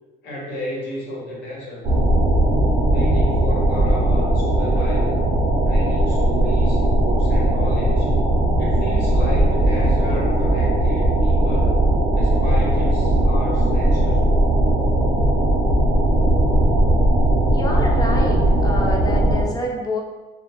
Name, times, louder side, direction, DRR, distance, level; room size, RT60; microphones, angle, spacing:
voice 1, 0.2-1.8 2.9-5.2 5.6-8.2 8.6-11.8 12.1-14.3, equal, 85° left, -4 dB, 0.9 m, -33 dB
sound 1, 1.8-19.4, right 1 dB, 50° right, 0.5 m, -18 dB
voice 2, 17.5-20.0, left 1 dB, 20° left, -1 dB, 0.5 m, -27 dB
2.2 x 2.1 x 2.8 m, 1.2 s
cardioid pair, 110°, 17 cm